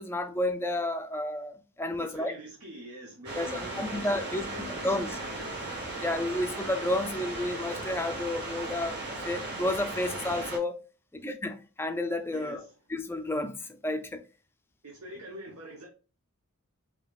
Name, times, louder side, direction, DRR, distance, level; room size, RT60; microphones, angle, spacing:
voice 1, 0.0-2.3 3.3-5.2 6.0-10.8 11.1-12.6 12.9-14.2, left 1 dB, 10° left, 0.3 m, -31 dB
voice 2, 2.0-6.2 12.3-12.7 14.8-15.9, equal, 85° right, 1.0 m, -45 dB
sound 1, 3.2-10.6, right 2 dB, 50° right, 1.3 m, -37 dB
4.7 x 2.8 x 2.4 m
head